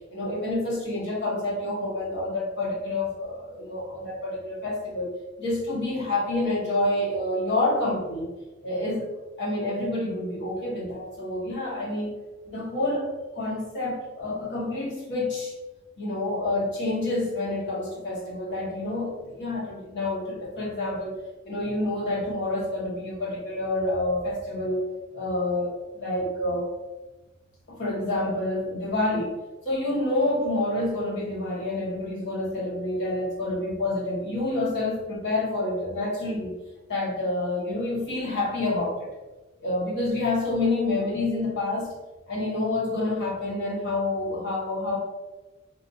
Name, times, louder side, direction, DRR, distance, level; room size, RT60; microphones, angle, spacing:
voice 1, 0.1-5.1 5.4-8.3 8.6-9.1 9.4-12.1 12.4-15.5 16.0-21.2 21.4-24.9 25.1-26.7 27.7-29.3 29.6-36.5 36.9-39.1 39.6-41.9 42.3-45.0, left 2 dB, 60° left, -5 dB, 1.2 m, -28 dB
3.4 x 2.5 x 2.6 m, 1.1 s
head